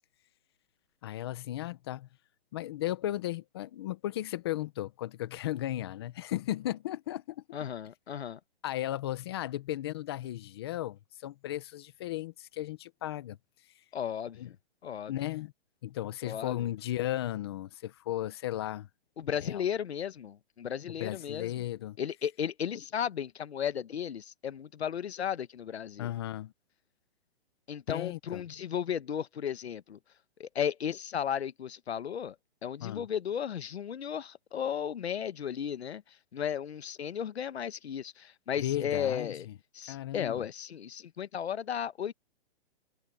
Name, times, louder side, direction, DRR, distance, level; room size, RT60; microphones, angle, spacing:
voice 1, 1.0-2.1 2.5-7.4 8.6-13.4 14.4-14.5 15.1-15.5 15.8-18.9 19.4-19.6 20.9-22.0 26.0-26.5 27.9-28.4 32.8-33.1 38.6-39.5 39.9-40.4, left 13 dB, 25° left, 0.9 m, -35 dB
voice 2, 7.5-8.4 13.9-14.5 14.8-15.1 16.2-16.6 19.2-21.5 22.0-26.1 27.7-30.0 30.4-32.3 32.6-36.0 36.3-39.5 39.7-42.1, left 8 dB, 85° left, 1.2 m, -35 dB
hypercardioid pair, 170°, 31 cm